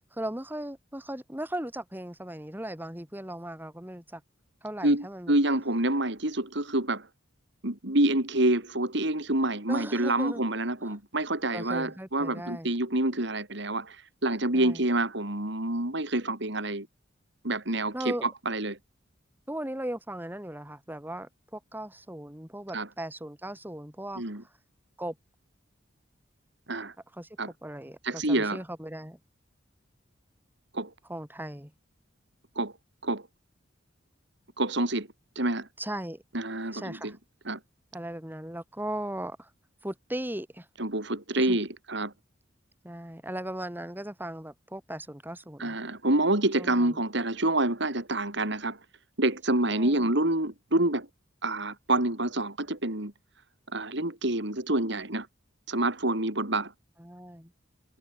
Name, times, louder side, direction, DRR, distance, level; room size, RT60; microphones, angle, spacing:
voice 1, 0.1-4.2 4.6-5.4 9.7-10.4 10.8-11.0 11.5-12.7 14.5-14.8 17.9-18.3 19.5-24.2 25.0-25.1 27.1-27.3 27.6-29.2 31.1-31.7 35.8-36.2 36.7-37.2 37.9-39.5 39.8-40.7 41.4-41.6 42.8-45.8 46.6-47.0 49.7-50.1 57.0-57.5, right 1 dB, 10° right, 4.2 m, -37 dB
voice 2, 4.8-7.1 7.6-14.0 14.2-16.9 17.4-17.9 18.2-18.8 22.7-22.9 24.2-24.4 26.7-26.9 27.4-27.5 28.0-28.6 30.7-30.9 32.6-32.7 33.0-33.2 34.6-35.1 35.4-35.7 36.3-37.1 37.5-37.6 40.8-42.1 45.6-48.8 49.2-51.1 51.4-53.1 53.7-55.3 55.7-56.7, right 1 dB, 65° right, 4.0 m, -27 dB
head